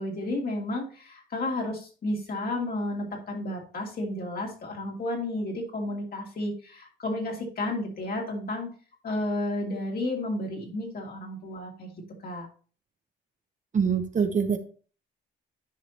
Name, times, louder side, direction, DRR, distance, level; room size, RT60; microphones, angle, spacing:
voice 1, 0.0-8.7 9.0-11.9 12.2-12.5, left 1 dB, 50° left, 0 dB, 2.6 m, -32 dB
voice 2, 13.7-14.6, right 6 dB, 40° right, 7 dB, 0.9 m, -24 dB
10.5 x 5.0 x 2.9 m, 0.40 s
cardioid pair, 90°, 20 cm